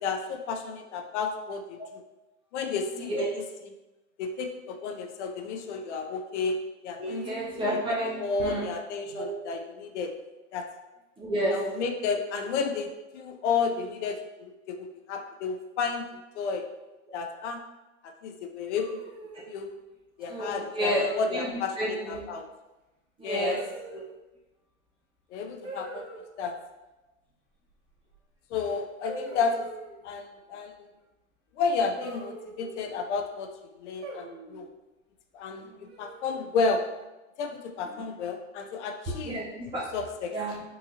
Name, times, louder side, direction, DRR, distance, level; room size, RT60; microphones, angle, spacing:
voice 1, 0.0-2.0 2.5-3.1 4.2-7.6 8.0-10.1 10.5-10.7 11.5-16.1 16.4-16.7 17.1-17.6 18.0-19.0 19.5-19.8 20.2-22.5 23.2-23.6 25.3-26.1 26.4-26.6 28.5-29.7 30.0-30.9 31.5-34.7 35.3-36.8 37.4-39.4 39.9-40.6, left 5 dB, 55° left, 4 dB, 0.5 m, -32 dB
voice 2, 7.0-8.7 9.1-9.3 11.2-11.5 20.3-21.0 21.3-21.5 21.8-22.2 23.2-23.6 23.9-24.0 35.6-35.7 39.1-39.8 40.3-40.6, right 1 dB, 15° right, -5 dB, 0.4 m, -30 dB
sound 1, 18.8-19.6 20.9-21.3 21.7-22.1 23.5-24.2 25.6-26.2 28.2-28.3 29.0-30.0 32.0-33.0 34.0-34.7 35.9-36.5, right 2 dB, 65° right, 1.3 m, -43 dB
3.7 x 2.7 x 2.6 m, 1.0 s
hypercardioid pair, 115°, 42 cm